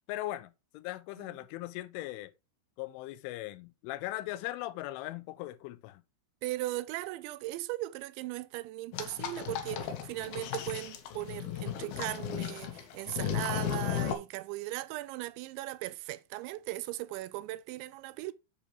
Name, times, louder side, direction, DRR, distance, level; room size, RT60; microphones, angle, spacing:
voice 1, 0.1-2.3 2.8-6.0, left 16 dB, 85° left, 3.1 m, -39 dB
voice 2, 6.4-18.3, right 17 dB, 85° right, 2.7 m, -38 dB
sound 1, 8.9-14.1, left 10 dB, 65° left, 2.6 m, -35 dB
8.5 x 7.4 x 3.3 m
omnidirectional pair, 5.5 m